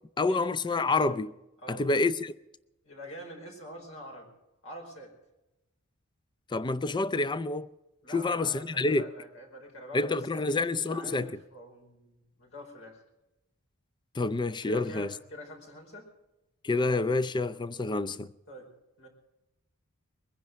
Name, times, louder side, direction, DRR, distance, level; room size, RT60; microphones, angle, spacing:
voice 1, 0.2-1.3 1.7-2.3 6.5-7.7 8.1-9.1 9.9-11.4 14.1-15.1 16.6-18.3, left 3 dB, 20° left, 0.5 m, -28 dB
voice 2, 2.8-4.3 4.6-5.1 8.0-13.0 14.6-16.1 18.5-18.7 19.0-19.1, equal, 65° left, 4.9 m, -45 dB
22.0 x 10.5 x 6.2 m
head